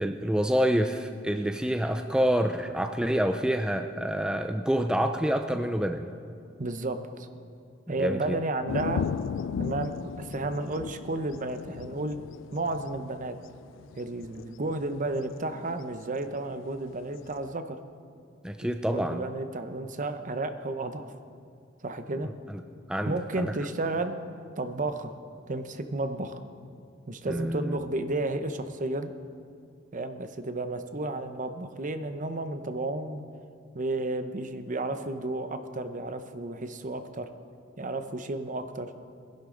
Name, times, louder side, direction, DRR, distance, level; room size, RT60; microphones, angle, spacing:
voice 1, 0.0-6.1 8.0-8.4 18.4-19.2 22.2-22.6 22.9-23.6 27.3-27.8, equal, 5° right, 6 dB, 0.4 m, -27 dB
voice 2, 6.6-7.3 7.9-9.1 9.6-12.2 12.5-13.4 13.9-17.8 18.6-21.1 21.8-22.3 23.1-24.2 24.6-25.1 25.5-26.4 27.1-29.1 29.9-33.2 33.7-37.3 37.8-38.9, right 2 dB, 45° right, 9 dB, 0.8 m, -32 dB
sound 1, 8.7-15.4 15.8-15.9 17.0-17.5, left 7 dB, 75° left, 0.3 m, -36 dB
21.5 x 11.0 x 3.8 m, 2.4 s
head